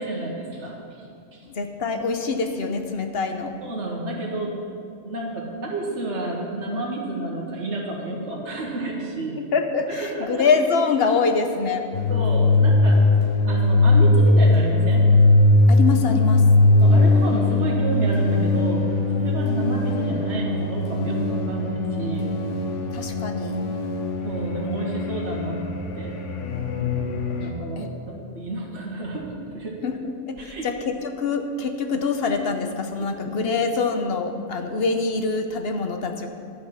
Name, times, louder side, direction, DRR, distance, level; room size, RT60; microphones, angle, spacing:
voice 1, 0.0-1.5 3.6-4.5 5.0-9.4 9.9-10.4 12.1-13.1 13.5-15.0 16.8-22.3 24.2-25.6 25.9-26.2 27.4-27.9 28.3-29.8 30.4-30.7 33.0-33.5, right 2 dB, 65° right, -3 dB, 1.9 m, -30 dB
voice 2, 1.4-3.6 9.5-11.9 15.7-16.5 22.9-23.6 27.8-27.9 29.8-36.3, left 4 dB, 55° left, 6 dB, 1.1 m, -25 dB
sound 1, 11.9-27.5, left 2 dB, 75° left, 1.2 m, -20 dB
11.5 x 9.3 x 5.7 m, 2.4 s
omnidirectional pair, 1.3 m